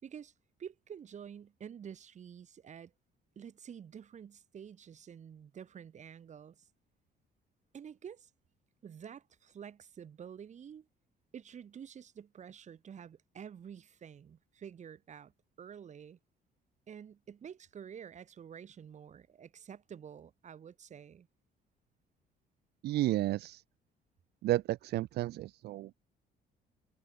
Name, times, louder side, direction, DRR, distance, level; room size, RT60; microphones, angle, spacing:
voice 1, 0.0-0.3 0.6-2.9 3.4-6.7 7.7-8.3 8.8-10.9 11.3-15.3 15.6-16.2 16.9-21.3, right 8 dB, 45° right, 4.4 m, -49 dB
voice 2, 22.8-23.6 24.4-25.9, right 16 dB, 75° right, 1.9 m, -32 dB
cardioid pair, 110°, 17 cm